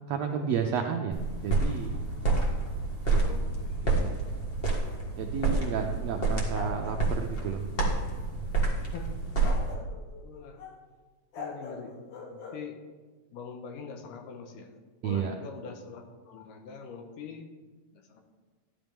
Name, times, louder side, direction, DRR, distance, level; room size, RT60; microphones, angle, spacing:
voice 1, 0.1-2.0 3.1-3.2 3.8-4.2 5.2-7.6 15.0-15.3, right 7 dB, 85° right, 4 dB, 1.4 m, -32 dB
sound 1, 1.1-9.7, right 3 dB, 30° left, 1.1 m, -29 dB
voice 2, 3.1-3.9 5.6-5.9 8.9-9.2 10.2-10.6 11.4-12.0 12.3-12.8 13.3-17.5 17.9-18.2, left 5 dB, 90° left, 4 dB, 2.8 m, -44 dB
sound 2, 6.5-7.6 9.4-10.8 11.3-12.6, left 3 dB, 55° left, 2.0 m, -42 dB
14.0 x 10.5 x 3.5 m, 1.3 s
omnidirectional pair, 3.7 m